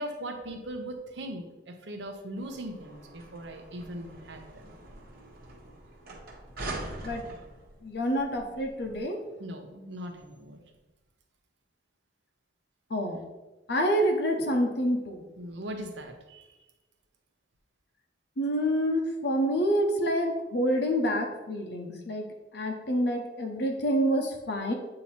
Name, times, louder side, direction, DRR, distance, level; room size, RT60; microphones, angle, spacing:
voice 1, 0.0-4.7 9.4-10.6 15.4-16.5, right 1 dB, 70° right, 4 dB, 0.9 m, -39 dB
sound 1, 2.4-9.0, right 2 dB, 55° right, 1.2 m, -43 dB
voice 2, 7.8-9.2 12.9-13.2 13.7-15.2 18.4-22.3 22.5-24.7, equal, 60° left, 2 dB, 0.8 m, -27 dB
8.5 x 2.9 x 4.3 m, 1.1 s
head